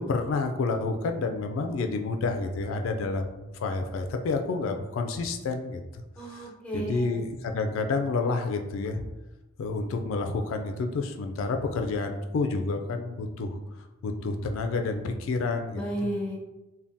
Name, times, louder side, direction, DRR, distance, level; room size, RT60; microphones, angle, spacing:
voice 1, 0.0-6.0 6.3-9.0 9.6-13.6 14.0-15.8, left 3 dB, 80° left, 6 dB, 0.3 m, -29 dB
voice 2, 6.2-7.2 15.7-16.4, right 1 dB, 5° left, -3 dB, 0.5 m, -33 dB
3.4 x 2.2 x 2.6 m, 1.0 s
head